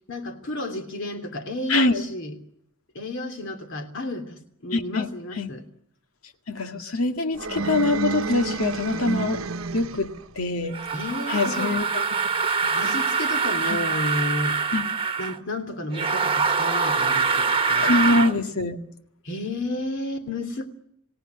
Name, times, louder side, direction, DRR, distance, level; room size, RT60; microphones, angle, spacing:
voice 1, 0.1-2.3 2.9-5.6 10.9-11.8 12.7-14.6 15.2-17.9 19.2-20.7, left 1 dB, 60° left, 6 dB, 3.0 m, -32 dB
voice 2, 1.7-2.0 4.7-5.1 5.4-5.5 6.5-9.4 9.7-10.8 11.3-12.1 12.6-12.7 13.7-13.8 14.7-14.9 17.8-18.8, left 2 dB, 85° left, 6 dB, 2.0 m, -24 dB
sound 1, 7.3-10.2, right 3 dB, 75° right, 1.0 m, -30 dB
sound 2, 10.7-15.4 15.9-18.4, right 5 dB, 25° right, 1.3 m, -24 dB
28.0 x 17.5 x 9.6 m, 0.76 s
head